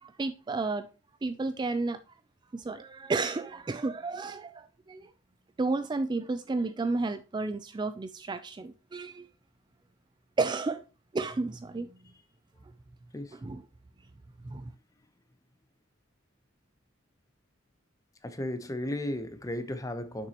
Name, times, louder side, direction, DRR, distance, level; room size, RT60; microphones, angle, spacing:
voice 1, 0.0-0.9 1.2-2.0 2.5-5.1 5.6-9.3 10.4-10.8 11.1-11.9 13.4-13.6 14.4-14.6, right 3 dB, 25° right, 0.3 m, -32 dB
voice 2, 18.2-20.3, left 1 dB, 15° left, 0.7 m, -34 dB
6.8 x 6.0 x 2.9 m
head